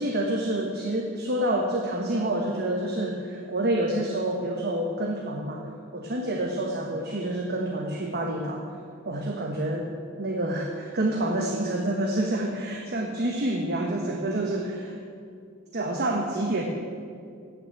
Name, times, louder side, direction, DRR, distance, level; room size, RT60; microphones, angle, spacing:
voice 1, 0.0-8.6 9.0-9.8 10.2-15.0 15.7-16.6, right 1 dB, 55° right, 1 dB, 1.2 m, -28 dB
16.0 x 6.2 x 8.2 m, 2.3 s
head